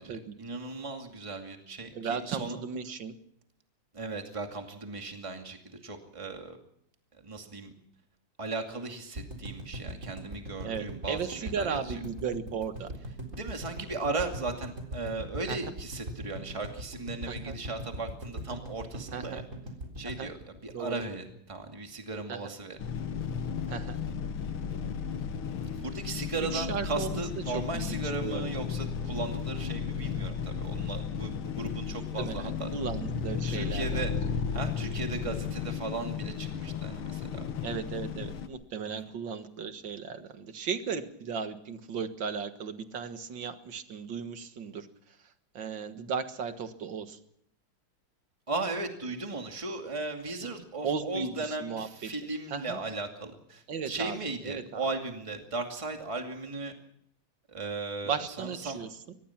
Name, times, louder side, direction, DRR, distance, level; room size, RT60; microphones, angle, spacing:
voice 1, 0.0-2.6 3.9-6.6 7.1-7.7 8.4-12.0 13.3-19.4 20.0-20.4 20.6-22.8 25.7-32.7 33.5-37.4 38.9-39.1 48.5-56.7 57.5-58.8, right 3 dB, 15° right, 4 dB, 2.3 m, -37 dB
voice 2, 1.9-3.1 10.6-12.9 15.5-15.6 17.3-17.6 19.1-19.4 20.2-20.3 20.7-21.0 22.3-22.4 23.7-24.0 26.4-27.2 27.5-28.0 28.2-28.4 31.9-34.0 37.6-45.2 45.5-47.2 50.4-50.5 50.8-52.1 52.5-52.8 53.7-54.2 54.4-54.8 58.0-58.9, right 6 dB, 60° right, 9 dB, 2.2 m, -36 dB
sound 1, 9.1-21.3 21.6-21.7 21.9-22.0, right 1 dB, 35° right, 4.2 m, -40 dB
sound 2, 22.8-38.5, left 7 dB, 80° left, 2.4 m, -34 dB
23.5 x 20.0 x 5.9 m, 0.70 s
omnidirectional pair, 2.3 m